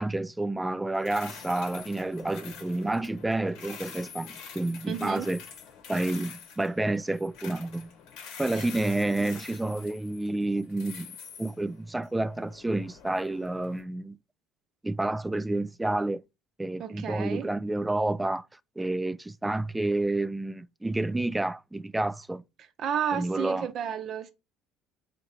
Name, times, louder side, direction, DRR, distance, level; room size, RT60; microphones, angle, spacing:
voice 1, 0.0-5.4 5.9-7.9 8.4-11.1 11.4-14.2 14.8-16.2 16.6-18.5 18.8-22.4 23.1-23.7, right 2 dB, 10° right, 0.3 m, -29 dB
sound 1, 0.9-13.8, left 6 dB, 65° left, 1.0 m, -46 dB
voice 2, 4.9-5.3 8.5-8.7 16.8-17.5 22.8-24.3, right 8 dB, 50° right, 0.6 m, -32 dB
3.5 x 2.8 x 3.5 m
hypercardioid pair, 65°, 0 cm